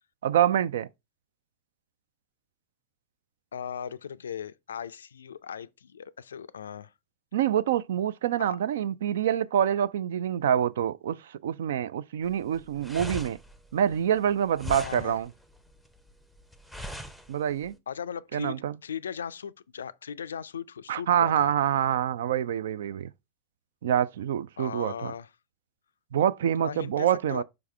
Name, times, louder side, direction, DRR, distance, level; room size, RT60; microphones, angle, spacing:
voice 1, 0.2-0.9 7.3-13.4 13.7-15.3 17.3-17.8 18.3-18.8 20.9-23.1 23.8-25.1 26.1-27.4, right 10 dB, 60° right, 0.3 m, -26 dB
voice 2, 3.5-6.9 8.4-8.6 14.7-15.2 17.9-21.5 24.6-25.3 26.6-27.4, left 7 dB, 70° left, 0.3 m, -38 dB
sound 1, 12.2-17.8, left 1 dB, 5° right, 0.7 m, -41 dB
6.1 x 4.7 x 3.3 m
figure-of-eight pair, 90°, 0 cm